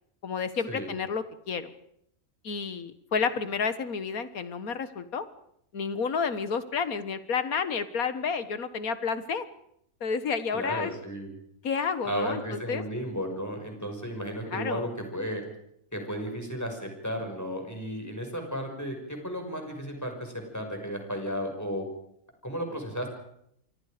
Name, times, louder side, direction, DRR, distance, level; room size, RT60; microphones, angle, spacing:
voice 1, 0.2-1.7 2.4-5.3 5.7-9.5 10.0-11.0 11.6-12.8 14.5-14.8, left 5 dB, 85° left, 12 dB, 1.9 m, -30 dB
voice 2, 10.5-11.3 12.0-15.4 15.9-21.9 22.4-23.1, equal, 10° left, 3 dB, 5.9 m, -34 dB
27.5 x 24.5 x 5.1 m, 0.73 s
omnidirectional pair, 1.5 m